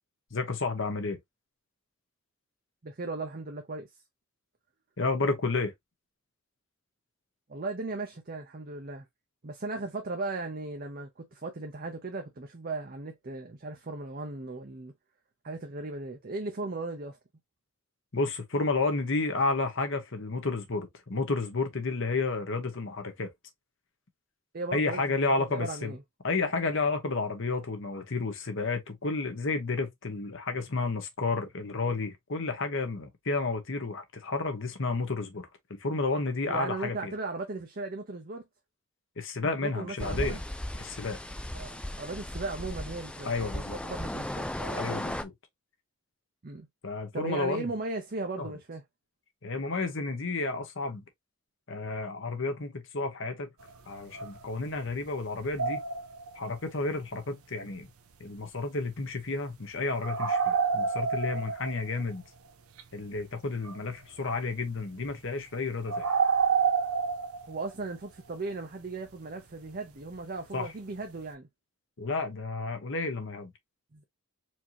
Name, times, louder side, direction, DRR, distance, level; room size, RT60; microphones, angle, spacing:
voice 1, 0.3-1.2 5.0-5.7 18.1-23.3 24.7-25.9 26.2-37.1 39.2-40.4 40.8-41.2 43.2-43.8 44.7-45.3 46.8-47.7 48.4-48.5 49.4-51.0 51.7-53.5 53.9-55.8 56.4-57.9 58.2-62.2 62.9-66.1 70.5-70.7 72.0-73.5, left 3 dB, 60° left, 1.1 m, -31 dB
voice 2, 2.8-3.9 7.5-9.0 9.4-14.9 15.4-17.2 24.5-26.0 36.5-38.4 39.6-40.4 41.6-44.9 46.4-46.7 47.1-48.8 67.5-71.5 73.9-74.0, right 3 dB, 45° right, 0.7 m, -37 dB
sound 1, 40.0-45.2, left 1 dB, 5° left, 0.3 m, -36 dB
sound 2, 53.6-53.8 54.1-55.0 55.4-56.4 60.0-62.0 62.8-62.9 63.2-63.3 63.6-63.9 64.8-65.3 65.9-67.8 70.1-70.2 70.9-71.0, right 6 dB, 90° right, 0.7 m, -28 dB
4.5 x 2.8 x 2.9 m
head